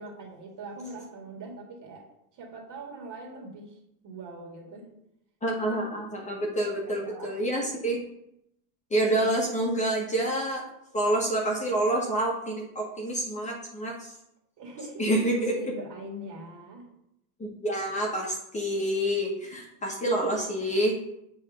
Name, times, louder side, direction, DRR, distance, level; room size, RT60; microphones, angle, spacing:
voice 1, 0.0-2.1 2.3-4.9 6.5-7.4 14.6-15.0 15.3-16.9, right 2 dB, 40° right, -1 dB, 2.3 m, -42 dB
voice 2, 5.4-8.0 8.9-10.6 10.9-14.1 15.0-15.6 17.4-20.9, right 1 dB, 15° left, -2 dB, 1.2 m, -27 dB
7.2 x 3.5 x 5.4 m, 0.82 s
supercardioid pair, 125°, 47 cm